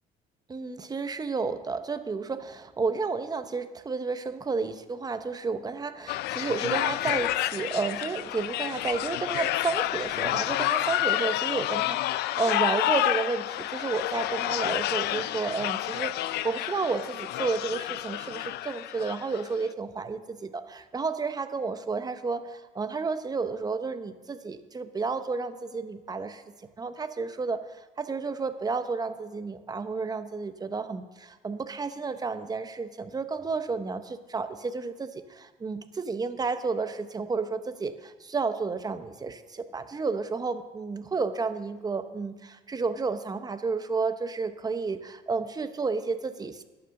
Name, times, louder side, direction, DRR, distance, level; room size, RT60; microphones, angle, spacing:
voice 1, 0.5-26.4 26.8-46.6, right 4 dB, 25° right, 10 dB, 0.8 m, -31 dB
sound 1, 6.1-19.4, left 15 dB, 75° left, 0.4 m, -29 dB
11.5 x 8.5 x 6.5 m, 1.2 s
cardioid pair, 110°, 17 cm